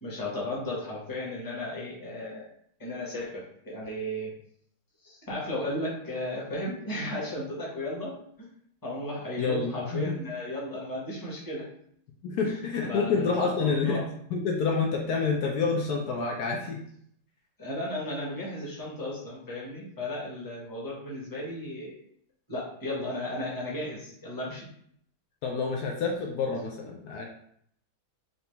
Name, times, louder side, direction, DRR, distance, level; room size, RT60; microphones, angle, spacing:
voice 1, 0.0-2.5 2.8-4.3 5.0-8.5 8.8-11.6 12.4-12.6 12.9-14.0 17.6-22.0 22.5-24.7, left 1 dB, 15° left, -5 dB, 1.1 m, -35 dB
voice 2, 9.4-10.1 12.2-14.0 14.3-16.8 25.4-27.2, left 4 dB, 70° left, 0 dB, 1.1 m, -28 dB
3.9 x 2.9 x 3.4 m, 0.67 s
omnidirectional pair, 1.8 m